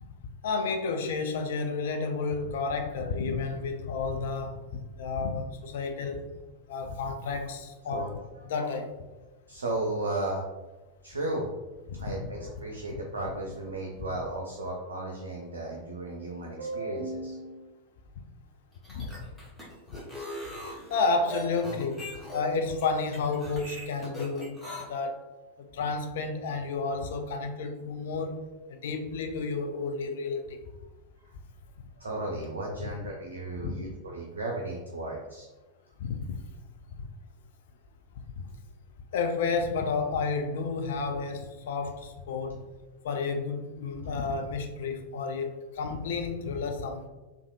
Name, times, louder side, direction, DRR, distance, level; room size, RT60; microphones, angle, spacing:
voice 1, 0.4-4.6 5.0-6.3 6.7-8.1 8.5-9.0 11.9-12.0 18.9-19.3 19.9-20.0 20.9-24.6 24.9-25.2 25.6-28.4 28.7-30.7 32.8-32.9 33.6-33.8 36.0-36.4 37.0-37.1 39.1-42.7 43.0-47.1, left 4 dB, 55° left, 0.3 m, -31 dB
voice 2, 8.4-8.7 9.5-10.5 11.0-11.5 11.9-17.7 31.2-31.3 32.0-35.5, right 2 dB, 70° right, 0.4 m, -34 dB
sound 1, 18.7-24.8, equal, 5° left, 0.9 m, -40 dB
3.4 x 2.4 x 2.2 m
figure-of-eight pair, 90°, 0 cm